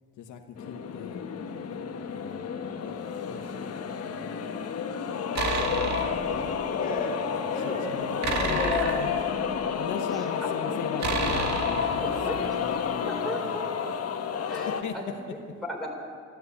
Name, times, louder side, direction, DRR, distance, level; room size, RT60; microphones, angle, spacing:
voice 1, 0.2-1.2 2.1-4.5 7.6-9.2 9.7-13.7 14.5-14.9, left 7 dB, 75° left, 4 dB, 1.1 m, -39 dB
sound 1, 0.6-14.8, left 6 dB, 55° left, 1.3 m, -31 dB
sound 2, 5.4-6.3 8.2-9.7 11.0-12.5, right 3 dB, 65° right, 2.1 m, -30 dB
voice 2, 5.5-8.0, left 3 dB, 30° left, 0 dB, 3.2 m, -36 dB
voice 3, 8.3-9.0 10.1-10.3 10.6-10.7 12.0-13.9 14.5-15.9, left 1 dB, ahead, -2 dB, 4.1 m, -36 dB
14.0 x 12.5 x 8.2 m, 2.1 s
cardioid pair, 90°, 30 cm